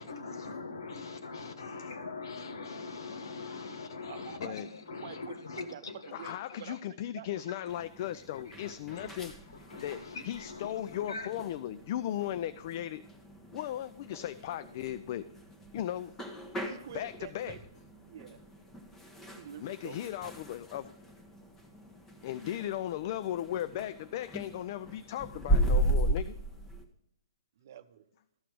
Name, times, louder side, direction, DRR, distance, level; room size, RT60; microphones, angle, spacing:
voice 1, 0.0-6.6 7.6-7.7 8.3-9.3 9.7-11.3, left 4 dB, 75° left, 7 dB, 1.3 m, -42 dB
voice 2, 4.1-4.6 5.0-5.3 5.7-6.8 7.1-7.3 16.6-17.6 18.0-18.4 19.3-20.3 27.6-28.1, right 10 dB, 55° right, 12 dB, 0.7 m, -47 dB
voice 3, 6.1-9.3 9.8-13.0 13.5-15.2 15.7-16.1 16.9-17.6 19.6-20.9 22.2-26.4, left 12 dB, 45° left, 15 dB, 0.3 m, -37 dB
sound 1, 7.7-26.8, right 1 dB, 15° left, 1.1 m, -37 dB
13.0 x 5.8 x 5.0 m, 0.79 s
hypercardioid pair, 125°, 2 cm